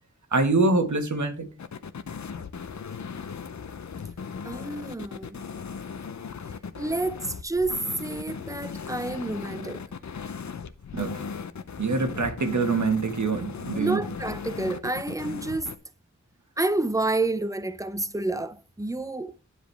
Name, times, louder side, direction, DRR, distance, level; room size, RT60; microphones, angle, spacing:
voice 1, 0.3-1.5 10.9-11.3 11.8-14.0, right 3 dB, 70° right, 1.4 m, -25 dB
sound 1, 1.6-15.8, left 6 dB, 65° left, 0.6 m, -37 dB
voice 2, 4.4-5.4 6.8-9.8 13.7-15.7 16.6-19.4, right 2 dB, 10° right, 0.6 m, -29 dB
9.7 x 5.0 x 3.3 m
wide cardioid pair, 60°, 30 cm